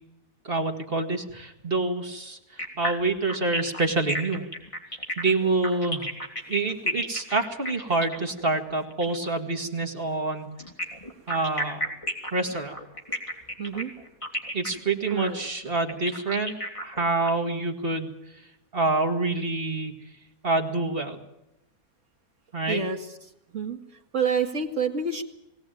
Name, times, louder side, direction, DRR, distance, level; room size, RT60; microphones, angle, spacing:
voice 1, 0.4-4.5 5.2-6.1 6.5-10.6 11.3-11.9 12.3-12.8 14.5-16.6 16.8-18.2 18.7-19.9 20.4-21.2 22.5-22.8, right 3 dB, 40° right, 4 dB, 2.1 m, -27 dB
sound 1, 2.6-9.4 10.6-17.3, equal, 20° left, 3.0 m, -33 dB
voice 2, 13.6-13.9 15.1-15.4 22.7-23.0 23.5-23.8 24.1-25.2, right 5 dB, 55° right, 2 dB, 2.2 m, -27 dB
21.0 x 17.5 x 9.1 m, 0.87 s
omnidirectional pair, 1.6 m